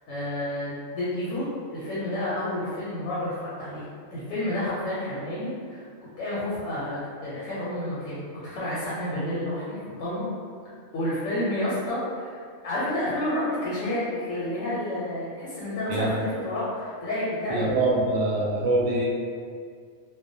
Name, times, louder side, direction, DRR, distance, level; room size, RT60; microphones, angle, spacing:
voice 1, 0.1-3.9 4.1-5.9 6.2-10.3 10.9-17.9, left 1 dB, 85° left, -9 dB, 1.0 m, -30 dB
voice 2, 17.5-19.1, right 2 dB, 70° right, -4 dB, 0.8 m, -24 dB
2.3 x 2.1 x 2.5 m, 2.1 s
omnidirectional pair, 1.4 m